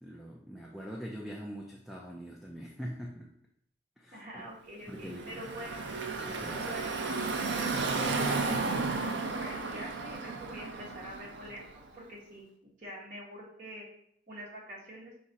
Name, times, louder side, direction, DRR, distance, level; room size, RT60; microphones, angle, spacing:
voice 1, 0.0-3.3 4.0-4.5 4.9-5.3 6.2-6.8, equal, ahead, -2 dB, 0.4 m, -43 dB
voice 2, 4.1-5.8 6.1-7.2 7.5-8.6 9.0-13.8 14.3-15.1, right 1 dB, 45° right, -5 dB, 1.4 m, -45 dB
Car passing by / Traffic noise roadway noise, 4.9-11.8, right 3 dB, 70° right, 0.5 m, -33 dB
5.1 x 2.5 x 4.0 m, 0.69 s
head